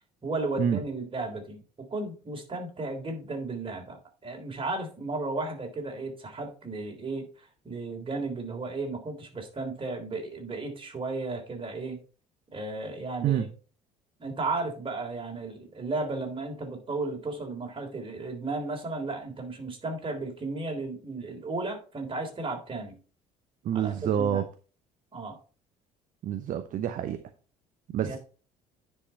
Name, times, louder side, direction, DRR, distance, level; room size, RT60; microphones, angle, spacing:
voice 1, 0.2-12.0 12.5-13.5 14.2-23.0 23.7-24.4 25.1-25.4 28.0-28.2, right 3 dB, 25° right, 2 dB, 3.4 m, -34 dB
voice 2, 23.6-24.4 26.2-27.2 27.9-28.2, right 9 dB, 45° right, 9 dB, 0.9 m, -27 dB
9.9 x 5.6 x 4.3 m, 0.37 s
figure-of-eight pair, 55°, 19 cm